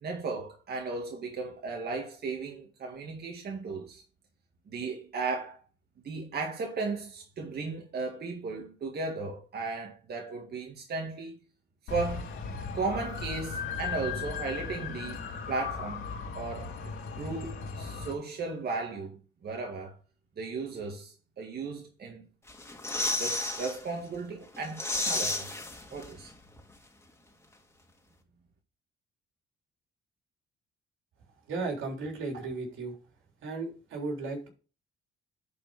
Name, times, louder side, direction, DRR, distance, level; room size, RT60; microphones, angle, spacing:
voice 1, 0.0-4.0 4.7-5.6 6.0-11.3 11.9-12.3 12.7-15.2 15.5-16.0 16.3-20.0 20.4-22.3 23.2-25.6 25.9-26.3, right 3 dB, 55° right, 1.9 m, -36 dB
sound 1, 11.9-18.1, left 5 dB, 90° left, 3.6 m, -37 dB
sound 2, 22.5-23.8 24.1-24.2 24.5-26.3 26.6-26.7, left 2 dB, 15° left, 2.2 m, -32 dB
voice 2, 31.5-33.0 33.4-34.5, right 3 dB, 80° right, 3.6 m, -35 dB
10.5 x 4.8 x 5.0 m
cardioid pair, 90°, 20 cm